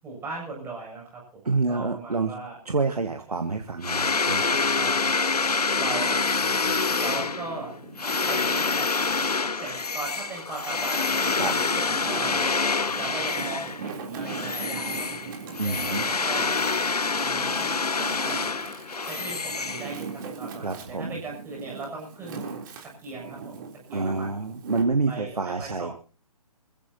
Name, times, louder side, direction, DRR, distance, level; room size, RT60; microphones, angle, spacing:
voice 1, 0.0-1.4 1.7-2.6 4.6-5.2 5.8-6.2 7.0-7.8 8.1-8.9 9.5-12.3 12.9-15.3 15.6-16.6 17.1-18.5 19.0-22.5 23.0-23.6 23.9-24.4 25.1-25.9, right 3 dB, 10° right, -2 dB, 7.4 m, -38 dB
voice 2, 1.4-2.3 2.6-4.6 11.3-11.5 15.6-16.1 20.6-21.2 23.9-25.9, right 3 dB, 75° right, 6 dB, 1.6 m, -27 dB
sound 1, 3.8-13.9 14.2-20.3, left 4 dB, 75° left, 0.9 m, -26 dB
Wind, 5.6-8.4 9.0-10.2 10.9-24.8, right 5 dB, 30° right, 3.5 m, -40 dB
26.5 x 15.5 x 2.9 m, 0.36 s
figure-of-eight pair, 135°, 20 cm